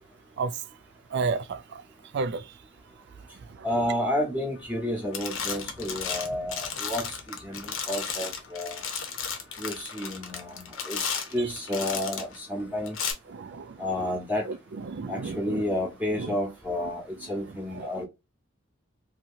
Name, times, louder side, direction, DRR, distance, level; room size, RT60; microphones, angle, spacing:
voice 1, 1.1-1.8 2.1-2.5 11.4-11.5 13.3-13.9 14.4-15.6 16.2-16.3 17.2-18.0, right 4 dB, 60° right, 0.4 m, -33 dB
voice 2, 3.6-8.8 9.6-11.0 11.3-13.1 13.8-14.5 15.1-18.0, left 1 dB, 10° right, 1.0 m, -31 dB
sound 1, 4.6-4.9 5.1-12.4 12.9-13.1, left 6 dB, 75° left, 0.8 m, -34 dB
2.8 x 2.8 x 2.5 m
head